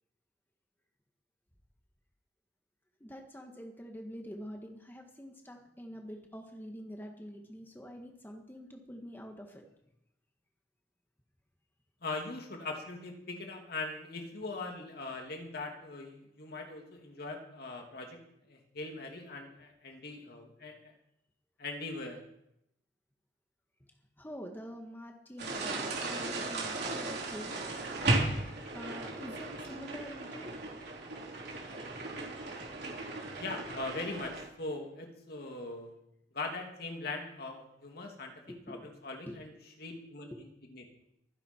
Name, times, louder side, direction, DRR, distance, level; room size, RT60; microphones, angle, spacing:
voice 1, 3.0-9.6 24.2-27.6 28.7-30.6 38.5-38.9 39.3-39.4, equal, 10° left, 2 dB, 1.6 m, -46 dB
voice 2, 12.0-18.2 18.5-20.9 21.6-22.2 33.3-35.9 36.3-38.3 38.7-39.5 39.8-40.8, left 2 dB, 60° left, 2 dB, 2.7 m, -41 dB
sound 1, 25.4-34.4, right 2 dB, 65° right, 3.6 m, -36 dB
24.0 x 10.5 x 4.6 m, 0.78 s
head